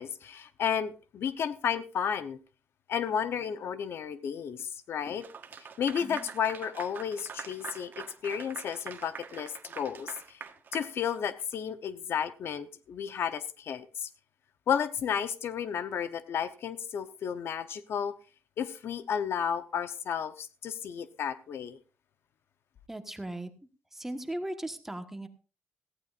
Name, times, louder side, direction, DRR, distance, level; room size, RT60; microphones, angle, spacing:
voice 1, 0.0-2.4 2.9-5.2 5.6-10.4 10.7-14.1 14.7-18.1 18.6-21.8, left 8 dB, 70° left, 0.9 m, -32 dB
Clapping / Applause, 5.2-11.6, right 6 dB, 50° right, 1.3 m, -44 dB
voice 2, 22.9-23.5 23.9-25.3, right 1 dB, 10° right, 1.4 m, -37 dB
18.0 x 15.0 x 2.5 m
wide cardioid pair, 140°, 4 cm